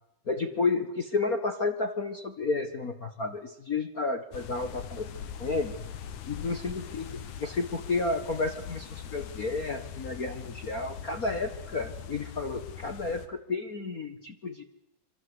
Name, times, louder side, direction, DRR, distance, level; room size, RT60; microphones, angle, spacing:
voice 1, 0.3-5.1 5.4-5.7 6.3-14.6, left 3 dB, 40° left, 6 dB, 1.5 m, -31 dB
sound 1, 4.3-13.3, left 8 dB, 85° left, 3.1 m, -41 dB
26.5 x 25.5 x 8.1 m, 0.83 s
omnidirectional pair, 3.4 m